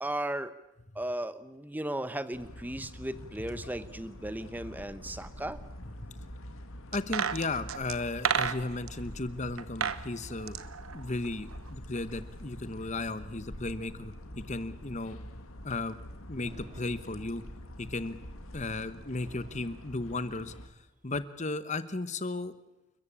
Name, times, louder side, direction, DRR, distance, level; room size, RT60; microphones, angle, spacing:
voice 1, 0.0-0.5 0.9-5.6, right 1 dB, 10° right, 13 dB, 0.9 m, -36 dB
sound 1, 2.3-20.7, equal, 80° left, 2.3 m, -46 dB
voice 2, 6.9-10.6 10.9-15.2 15.6-16.0 16.3-17.4 17.8-18.2 18.5-20.5 21.0-22.5, left 2 dB, 35° left, 13 dB, 1.0 m, -35 dB
sound 2, 6.9-8.9 9.6-10.0 10.3-11.7 12.0-12.1, right 7 dB, 80° right, 1.1 m, -32 dB
Fireworks, 16.4-17.7 19.2-20.7, right 1 dB, 35° right, 3.2 m, -56 dB
29.5 x 14.5 x 8.5 m, 0.96 s
head